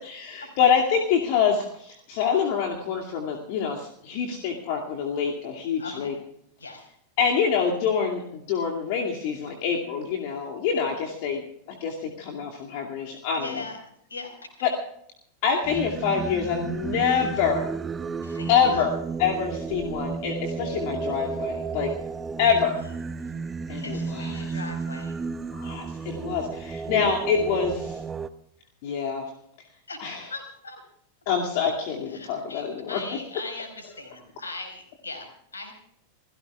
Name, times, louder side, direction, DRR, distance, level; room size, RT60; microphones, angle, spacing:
voice 1, 0.0-6.1 7.2-11.4 11.7-13.6 14.6-14.7 15.4-17.7 18.5-21.9 22.4-22.8 23.7-24.6 25.5-28.0 28.8-29.2 30.0-30.3 31.3-33.0, left 6 dB, 45° left, 0 dB, 2.4 m, -26 dB
voice 2, 5.8-6.1 6.6-6.9 13.3-13.8 14.1-14.3 18.2-18.8 22.5-22.8 23.8-25.1 29.9-30.0 30.3-30.8 31.6-31.7 32.1-35.3 35.5-35.7, left 3 dB, 75° left, 4 dB, 4.8 m, -39 dB
Singing, 15.6-28.3, right 5 dB, 15° right, 0.8 m, -33 dB
29.0 x 17.0 x 2.4 m, 0.71 s
figure-of-eight pair, 90°, 0 cm